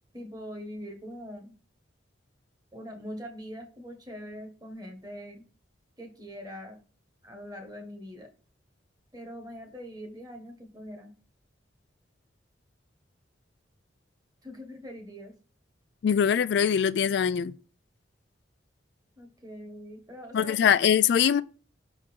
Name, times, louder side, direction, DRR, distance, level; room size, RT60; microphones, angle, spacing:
voice 1, 0.1-1.6 2.7-5.4 6.0-6.8 7.2-8.3 9.1-11.1 14.4-15.3 19.2-20.7, equal, 20° right, 1.3 m, -42 dB
voice 2, 16.0-17.5 20.3-21.4, left 8 dB, 65° left, 0.3 m, -22 dB
6.0 x 3.9 x 4.4 m
head